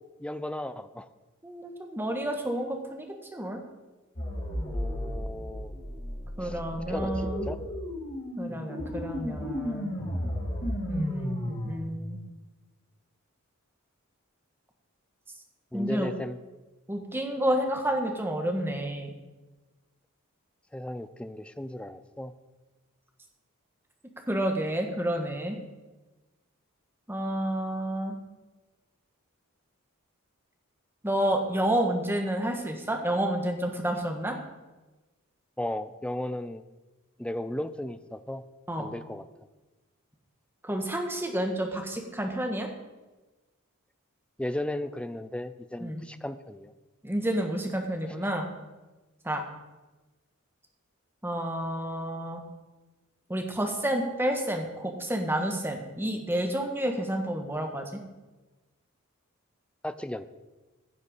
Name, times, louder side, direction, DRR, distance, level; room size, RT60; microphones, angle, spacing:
voice 1, 0.2-1.1 4.7-5.7 6.4-6.6 6.9-7.6 8.5-8.6 15.7-16.4 20.7-22.3 35.6-36.6 37.2-38.4 38.8-39.3 44.4-46.7 59.8-60.3, left 1 dB, 5° left, 12 dB, 0.4 m, -35 dB
voice 2, 1.4-3.1 3.3-3.6 6.4-7.5 8.4-9.9 10.9-12.2 15.7-16.1 16.9-19.1 24.3-25.6 27.1-28.1 31.0-34.4 38.7-38.9 40.6-42.7 45.8-46.0 47.0-48.5 49.2-49.4 51.2-52.4 53.3-58.0, right 1 dB, 10° right, 3 dB, 1.3 m, -30 dB
sound 1, 4.2-11.8, equal, 40° left, 2.4 m, -34 dB
15.0 x 6.6 x 5.5 m, 1.2 s
head